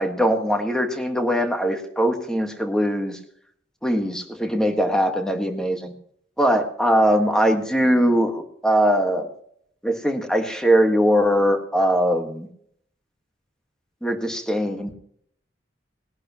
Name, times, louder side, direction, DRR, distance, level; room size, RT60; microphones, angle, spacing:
voice 1, 0.0-3.2 3.8-5.9 6.4-9.3 9.8-12.5 14.0-14.9, equal, 5° left, 4 dB, 1.6 m, -21 dB
20.5 x 11.5 x 3.0 m, 0.66 s
head